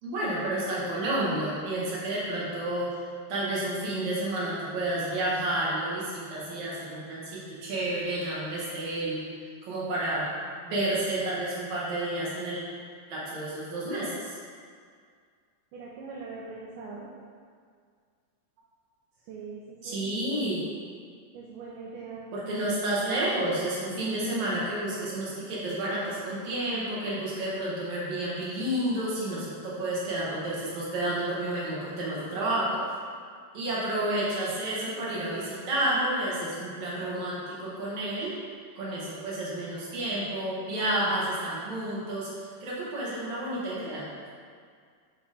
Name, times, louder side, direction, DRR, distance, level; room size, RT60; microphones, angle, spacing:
voice 1, 0.0-9.2 9.6-10.3 10.6-12.6 13.1-14.4 19.8-20.7 22.3-32.8 33.5-38.3 38.8-44.1, right 1 dB, 55° right, -7 dB, 2.8 m, -30 dB
voice 2, 15.7-17.1 19.3-20.0 21.3-22.3, right 4 dB, 75° right, -5 dB, 2.0 m, -41 dB
11.0 x 3.6 x 4.2 m, 2.1 s
omnidirectional pair, 4.3 m